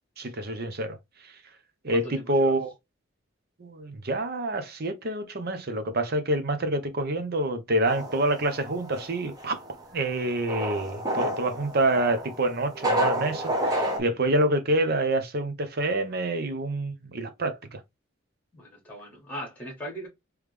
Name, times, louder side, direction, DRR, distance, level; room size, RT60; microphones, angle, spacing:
voice 1, 0.2-1.0 1.2-1.3 1.8-2.7 3.6-9.6 9.9-17.8, right 1 dB, 55° right, 0.8 m, -27 dB
voice 2, 1.9-2.6 18.5-20.1, equal, 10° left, 1.6 m, -39 dB
sound 1, 7.9-14.0, right 1 dB, 20° right, 1.0 m, -30 dB
3.5 x 3.1 x 3.2 m
head